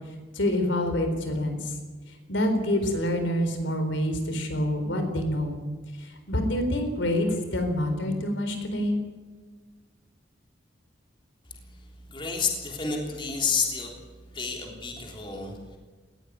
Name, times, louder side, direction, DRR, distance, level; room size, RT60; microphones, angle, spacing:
voice 1, 0.3-1.8 2.3-5.6 6.0-9.0, left 1 dB, 75° left, 6 dB, 4.1 m, -27 dB
voice 2, 12.0-13.9 14.3-15.8, left 5 dB, 25° left, 0 dB, 3.4 m, -30 dB
20.0 x 16.0 x 9.5 m, 1.3 s
head